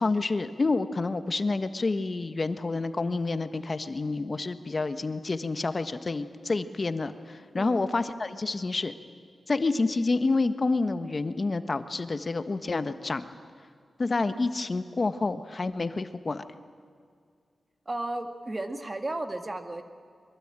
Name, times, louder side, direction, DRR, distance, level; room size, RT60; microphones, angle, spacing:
voice 1, 0.0-8.9 9.5-13.3 14.0-16.4, left 3 dB, 45° left, 11 dB, 1.3 m, -28 dB
voice 2, 17.9-19.8, right 2 dB, 35° right, 7 dB, 2.2 m, -34 dB
23.0 x 23.0 x 9.0 m, 2.2 s
cardioid pair, 50°, 0 cm